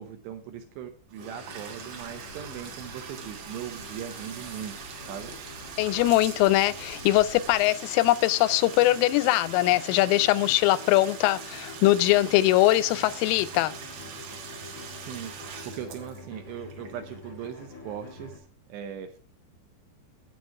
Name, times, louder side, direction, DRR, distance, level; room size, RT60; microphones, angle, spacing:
voice 1, 0.0-4.7 5.1-5.3 14.9-15.3 15.6-18.4 18.7-19.2, right 9 dB, 75° right, 2.7 m, -39 dB
Bathtub (filling or washing), 1.1-17.8, right 7 dB, 60° right, 3.0 m, -42 dB
sound 1, 1.2-18.4, left 3 dB, 35° left, 1.2 m, -47 dB
sound 2, 2.0-7.5, left 1 dB, 40° right, 1.3 m, -50 dB
voice 2, 5.8-13.7, left 17 dB, 90° left, 3.2 m, -22 dB
9.7 x 8.3 x 4.6 m
omnidirectional pair, 5.7 m